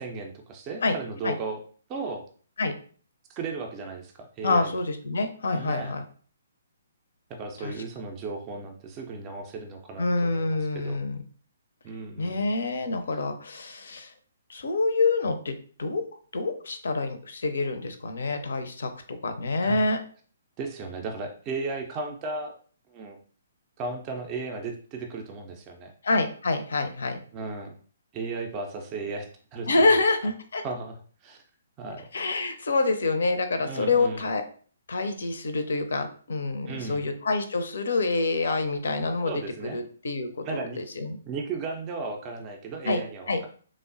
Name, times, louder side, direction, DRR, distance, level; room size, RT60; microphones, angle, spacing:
voice 1, 0.0-1.6 1.9-2.3 3.3-4.7 5.5-5.9 7.3-11.0 11.8-12.5 19.6-19.8 20.6-22.6 22.9-23.2 23.8-25.9 27.3-27.8 28.1-29.9 30.6-31.4 31.8-32.1 33.6-34.3 36.7-37.1 39.2-39.8 40.4-40.8 41.3-43.5, right 3 dB, 25° right, 3 dB, 0.4 m, -35 dB
voice 2, 4.4-6.0 7.6-7.7 10.0-11.2 12.2-14.1 14.5-16.0 16.3-20.0 26.0-27.2 29.7-30.6 32.1-34.4 34.9-39.3 39.7-41.2 42.8-43.0 43.3-43.4, left 3 dB, 65° left, 8 dB, 0.4 m, -27 dB
3.2 x 2.0 x 2.5 m, 0.43 s
figure-of-eight pair, 130°, 0 cm